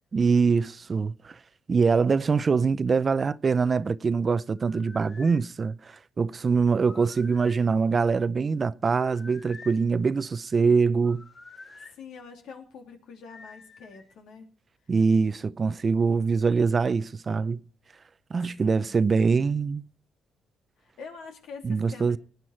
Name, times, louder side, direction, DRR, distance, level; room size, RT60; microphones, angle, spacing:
voice 1, 0.1-1.4 1.7-11.2 14.9-17.6 18.3-19.8 21.6-22.2, right 5 dB, 35° right, 0.6 m, -24 dB
sound 1, 4.6-5.4 6.8-7.7 9.0-9.9 11.0-12.0 13.3-14.1, left 4 dB, 35° left, 1.6 m, -49 dB
voice 2, 11.6-14.5 18.6-19.0 20.8-22.2, left 5 dB, 80° left, 3.2 m, -45 dB
18.5 x 9.3 x 4.4 m
cardioid pair, 90°, 0 cm